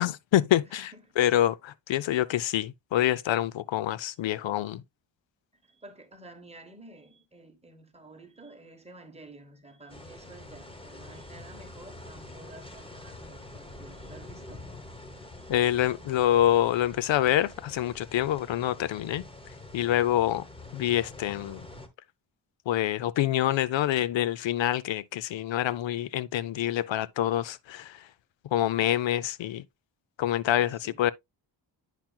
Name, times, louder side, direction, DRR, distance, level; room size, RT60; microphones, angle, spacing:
voice 1, 0.0-0.9 1.2-4.8 15.5-19.3 19.7-20.5 20.7-21.7 22.7-28.0 28.5-29.6 30.2-31.1, left 12 dB, 80° left, 0.6 m, -26 dB
voice 2, 0.6-1.3 5.6-14.6 15.4-15.5 15.9-16.1 30.6-31.0, right 2 dB, 15° right, 1.1 m, -51 dB
sound 1, 9.9-21.9, left 2 dB, 10° left, 0.9 m, -46 dB
9.1 x 5.8 x 2.2 m
wide cardioid pair, 175°, 44 cm